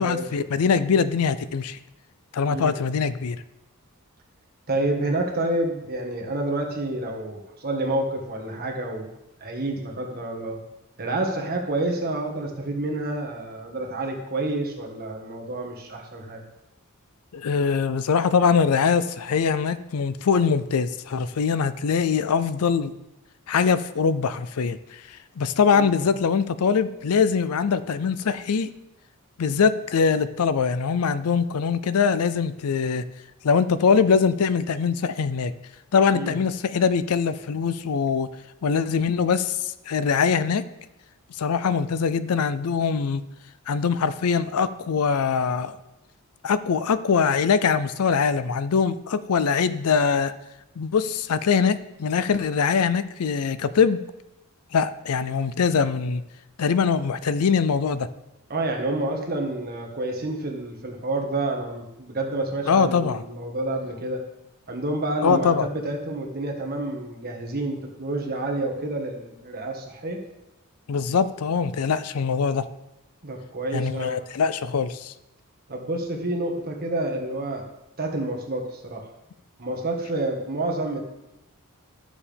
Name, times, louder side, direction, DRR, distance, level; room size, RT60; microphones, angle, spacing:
voice 1, 0.0-1.8 2.3-3.4 17.3-22.9 23.5-24.8 25.4-28.7 29.4-33.0 33.4-35.5 35.9-38.3 38.6-39.6 39.9-40.6 41.4-43.2 43.7-45.8 46.4-50.3 50.8-54.0 54.7-56.2 56.6-58.1 62.7-63.2 65.2-65.7 70.9-72.6 73.7-75.1, left 6 dB, 80° left, 14 dB, 0.5 m, -22 dB
voice 2, 2.5-2.8 4.7-9.1 9.4-10.6 11.0-16.4 25.7-25.9 36.1-36.3 58.5-64.2 64.7-70.2 73.2-74.3 75.7-77.6 78.0-79.0 79.6-81.0, right 2 dB, 45° right, 1 dB, 1.6 m, -29 dB
12.5 x 7.1 x 3.5 m, 0.92 s
head